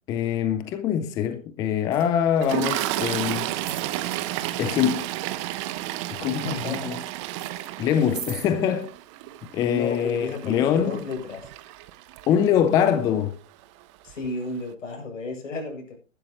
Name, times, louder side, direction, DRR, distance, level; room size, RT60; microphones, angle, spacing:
voice 1, 0.1-3.5 4.6-5.1 6.1-7.0 7.8-8.9 9.5-11.0 12.3-13.4, left 9 dB, 10° left, 0.5 m, -23 dB
sound 1, 1.9-2.1 2.4-3.1 3.6-4.2 4.8-5.3 5.6-7.0 7.3-8.5 9.3-9.4, right 6 dB, 75° right, 3.2 m, -41 dB
Toilet flush, 2.4-12.7 13.6-13.8 14.1-14.3, right 15 dB, 25° right, 0.8 m, -32 dB
voice 2, 6.3-7.0 7.8-8.0 9.7-11.5 14.0-16.0, left 3 dB, 70° left, 8.0 m, -33 dB
15.5 x 12.5 x 3.0 m
hypercardioid pair, 130°, 39 cm